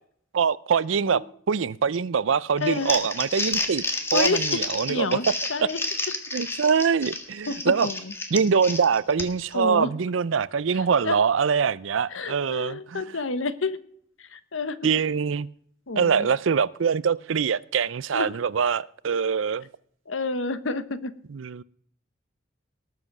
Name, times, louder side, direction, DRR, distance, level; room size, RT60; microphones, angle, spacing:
voice 1, 0.3-3.8 4.1-5.2 6.3-7.9 8.3-13.0 14.8-15.5 16.0-19.7 21.3-21.6, right 6 dB, 85° right, 0.5 m, -24 dB
voice 2, 2.6-3.0 4.1-4.6 4.9-5.2 5.5-5.8 7.5-7.6 7.8-8.1 9.5-9.9 10.7-11.2 12.1-13.8 14.2-15.0 15.9-16.3 18.1-18.3 20.1-21.1, left 3 dB, 90° left, 1.1 m, -29 dB
Crumpling crinkling, 2.6-9.5, left 2 dB, 15° left, 1.7 m, -30 dB
19.0 x 7.7 x 6.0 m
head